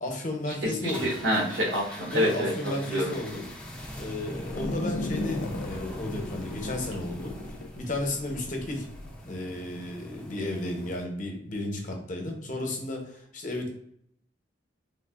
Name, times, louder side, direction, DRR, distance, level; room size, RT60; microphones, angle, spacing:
voice 1, 0.0-1.1 2.1-3.5 4.0-8.9 9.2-13.7, left 1 dB, 45° left, 2 dB, 0.7 m, -33 dB
voice 2, 0.6-3.1, equal, 75° right, -1 dB, 1.0 m, -27 dB
sound 1, 0.8-11.0, equal, 5° left, 0.4 m, -42 dB
sound 2, 4.4-9.1, left 2 dB, 90° left, 0.4 m, -36 dB
3.2 x 2.4 x 2.3 m, 0.69 s
head